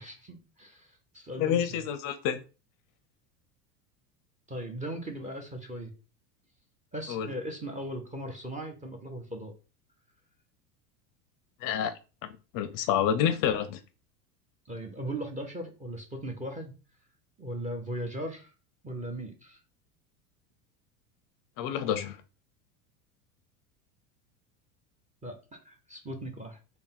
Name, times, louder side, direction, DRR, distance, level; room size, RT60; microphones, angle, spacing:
voice 1, 0.0-1.8 4.5-5.9 6.9-9.5 14.7-16.7 17.4-18.5 18.8-19.6 25.2-25.4 25.6-26.6, right 1 dB, 15° right, 0.9 m, -38 dB
voice 2, 1.4-2.4 7.1-7.3 11.6-11.9 12.5-13.8 21.6-22.2, left 9 dB, 45° left, 0.5 m, -28 dB
3.4 x 2.3 x 4.2 m
hypercardioid pair, 100°, 46 cm